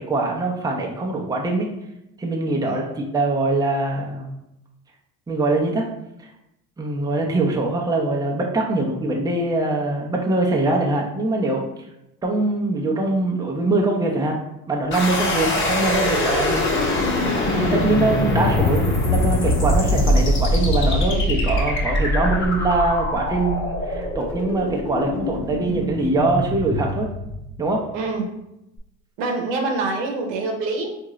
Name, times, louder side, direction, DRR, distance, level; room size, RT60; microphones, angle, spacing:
voice 1, 0.0-1.7 2.2-4.3 5.3-5.9 6.8-11.6 12.2-14.4 14.7-16.6 17.5-27.1 27.6-27.8, right 2 dB, 10° right, -1 dB, 0.6 m, -23 dB
voice 2, 2.6-2.9 18.6-18.7 27.9-28.3 29.2-31.1, right 3 dB, 80° right, 2 dB, 0.8 m, -26 dB
sound 1, 14.9-27.8, left 1 dB, 35° left, 1.1 m, -22 dB
3.7 x 2.5 x 3.0 m, 0.86 s
supercardioid pair, 90°, 34 cm